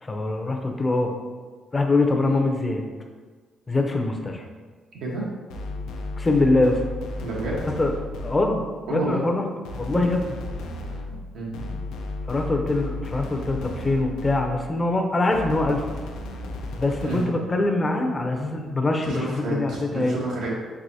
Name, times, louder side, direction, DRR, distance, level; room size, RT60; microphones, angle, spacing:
voice 1, 0.0-1.1 1.7-2.8 3.7-4.4 6.2-6.8 7.6-8.0 8.2-8.6 8.9-9.5 9.8-10.4 12.3-15.8 16.8-20.2, left 2 dB, 25° left, 3 dB, 0.6 m, -23 dB
sound 1, 5.5-8.8 9.6-14.8 15.3-17.5, left 2 dB, 90° left, 0.5 m, -34 dB
voice 2, 7.2-7.6 8.9-9.2 11.3-11.7 17.0-17.2 19.0-20.5, right 2 dB, 80° right, -3 dB, 1.1 m, -30 dB
4.8 x 3.7 x 2.7 m, 1.4 s
cardioid pair, 90°, 0 cm